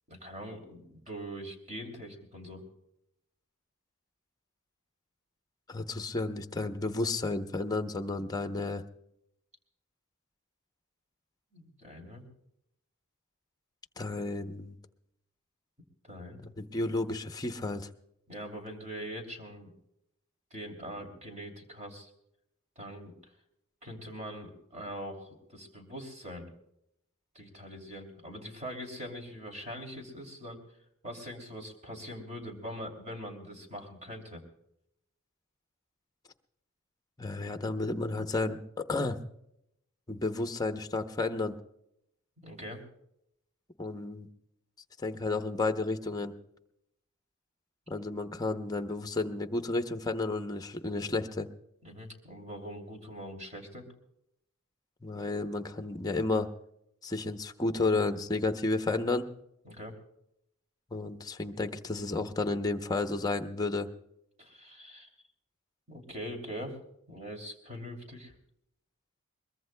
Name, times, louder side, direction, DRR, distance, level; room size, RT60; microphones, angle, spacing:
voice 1, 0.1-2.7 11.5-12.2 16.0-16.4 18.3-19.7 20.5-22.1 22.8-23.1 23.8-26.5 27.3-30.6 31.0-34.4 42.4-42.8 51.8-53.8 59.6-59.9 64.4-65.1 65.9-66.8 67.1-68.3, equal, 35° right, 2 dB, 2.8 m, -42 dB
voice 2, 5.7-8.8 14.0-14.7 16.6-17.9 37.2-39.2 40.1-41.5 43.8-44.3 45.0-46.3 47.9-51.5 55.0-56.5 57.0-59.3 60.9-63.9, left 2 dB, 15° left, 7 dB, 0.7 m, -32 dB
22.5 x 21.5 x 2.2 m, 0.81 s
head